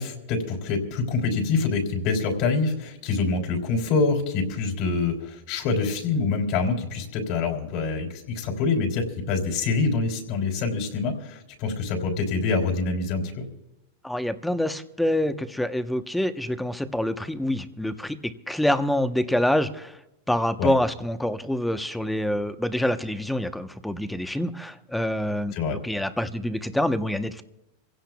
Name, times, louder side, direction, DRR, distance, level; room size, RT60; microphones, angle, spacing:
voice 1, 0.0-13.4 20.6-20.7 25.5-25.8, left 4 dB, 55° left, 2 dB, 3.5 m, -26 dB
voice 2, 14.0-20.0 20.3-27.4, left 1 dB, 5° left, 9 dB, 1.0 m, -26 dB
27.0 x 16.5 x 2.4 m, 0.93 s
hypercardioid pair, 105°, 0 cm